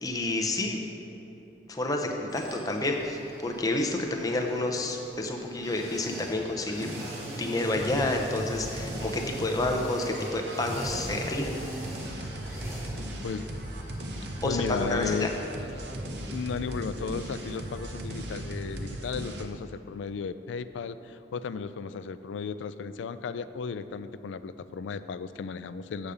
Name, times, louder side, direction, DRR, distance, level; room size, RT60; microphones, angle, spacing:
voice 1, 0.0-0.8 1.7-6.9 7.4-11.6 14.4-15.3, left 2 dB, 20° left, 2 dB, 0.6 m, -29 dB
sound 1, 2.3-18.1 18.4-18.5, equal, 15° right, 1.4 m, -43 dB
sound 2, 6.7-19.4, right 1 dB, 65° right, 0.7 m, -38 dB
voice 2, 14.4-15.3 16.3-26.1, left 5 dB, 90° left, 13 dB, 0.3 m, -34 dB
7.1 x 5.0 x 6.8 m, 3.0 s
head